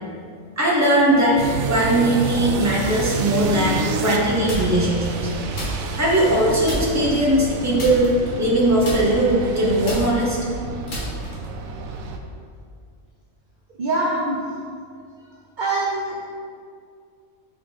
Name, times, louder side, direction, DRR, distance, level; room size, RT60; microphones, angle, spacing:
voice 1, 0.6-1.4 1.7-5.3 5.9-8.1 8.4-10.4, right 1 dB, 15° right, -5 dB, 1.0 m, -19 dB
sound 1, 1.4-12.2, right 4 dB, 85° right, 1.0 m, -29 dB
sound 2, 4.5-5.0 5.5-6.4 6.7-7.2 7.8-8.6 8.8-11.6, equal, 70° left, 2.0 m, -31 dB
voice 2, 13.8-14.4 15.6-16.3, right 2 dB, 45° right, -4 dB, 0.7 m, -24 dB
5.9 x 3.8 x 4.9 m, 2.2 s
omnidirectional pair, 1.4 m